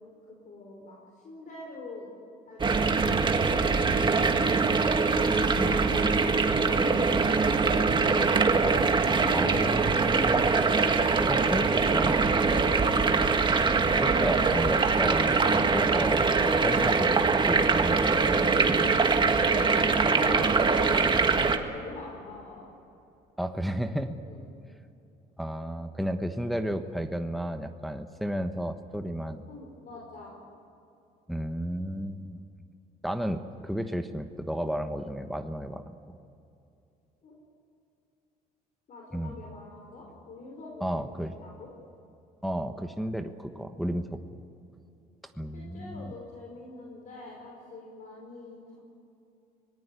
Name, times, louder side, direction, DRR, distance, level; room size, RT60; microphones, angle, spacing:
voice 1, 0.3-1.0 1.2-2.1 2.5-4.5 5.2-8.4 9.0-10.4 12.8-13.2 13.7-14.4 19.0-22.7 24.2-24.5 29.5-30.3 37.2-37.3 38.9-41.7 43.4-43.8 45.5-48.8, left 2 dB, 50° left, -1 dB, 5.4 m, -43 dB
sound 1, 2.6-21.6, right 4 dB, 30° right, 1.8 m, -23 dB
voice 2, 9.3-10.5 11.2-12.4 14.0-17.2 17.5-18.6 23.4-24.2 25.4-29.5 31.3-32.4 33.0-36.0 39.1-39.4 40.8-41.3 42.4-44.2 45.4-46.1, equal, ahead, 6 dB, 1.2 m, -33 dB
25.5 x 19.0 x 8.3 m, 2.7 s
cardioid pair, 110°, 17 cm